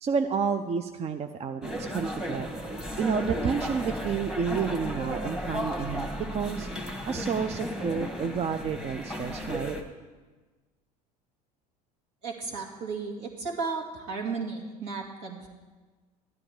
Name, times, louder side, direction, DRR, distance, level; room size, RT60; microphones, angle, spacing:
voice 1, 0.0-6.7 7.0-9.8, right 6 dB, 30° right, 9 dB, 0.5 m, -30 dB
sound 1, 1.6-9.8, equal, 5° right, 1.6 m, -34 dB
voice 2, 12.2-15.5, right 4 dB, 65° right, 0 dB, 2.4 m, -34 dB
12.0 x 9.9 x 4.9 m, 1.3 s
hypercardioid pair, 80°, 20 cm